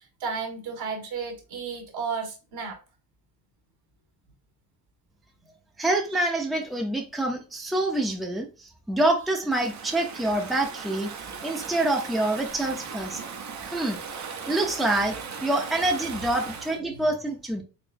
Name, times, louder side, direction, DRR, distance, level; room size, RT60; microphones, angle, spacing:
voice 1, 0.2-2.8 9.4-9.5 14.9-15.0 15.8-16.3 16.7-17.2, right 5 dB, 60° right, 1.7 m, -34 dB
voice 2, 5.8-11.1 11.4-13.2 13.6-14.0 14.5-17.6, right 2 dB, ahead, 0.8 m, -26 dB
Stream / Ocean, 9.5-16.8, right 6 dB, 40° right, 1.0 m, -38 dB
4.3 x 3.7 x 2.6 m
hypercardioid pair, 70°, 42 cm